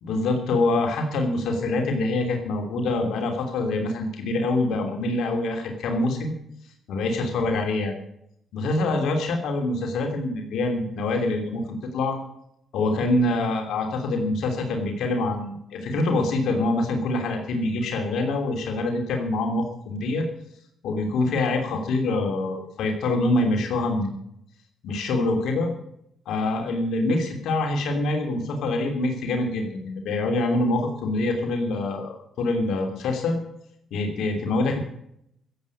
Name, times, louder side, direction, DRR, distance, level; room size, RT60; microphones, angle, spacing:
voice 1, 0.0-6.3 6.9-7.9 8.5-12.2 12.7-20.3 20.8-24.1 24.8-25.7 26.3-33.4 33.9-34.8, left 2 dB, 75° left, 3 dB, 3.0 m, -25 dB
15.5 x 8.2 x 8.6 m, 0.74 s
cardioid pair, 90°, 0 cm